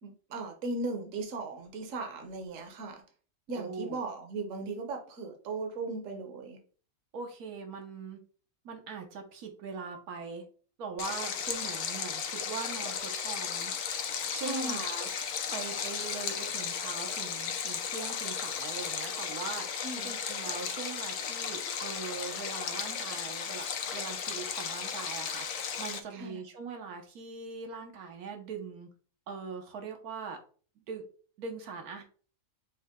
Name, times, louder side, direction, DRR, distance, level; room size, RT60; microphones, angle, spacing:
voice 1, 0.0-3.0 3.5-6.6 14.3-14.8 19.7-20.1 26.1-26.4, right 3 dB, 65° right, 3 dB, 1.2 m, -37 dB
voice 2, 3.5-4.0 7.1-8.2 8.6-10.4 10.8-15.1 15.5-19.7 20.0-28.9 29.3-30.4 30.8-31.0 31.4-32.0, right 5 dB, 85° right, 4 dB, 1.3 m, -41 dB
Stream, 11.0-26.0, left 7 dB, 85° left, 1.1 m, -35 dB
6.3 x 2.2 x 3.6 m, 0.41 s
omnidirectional pair, 1.5 m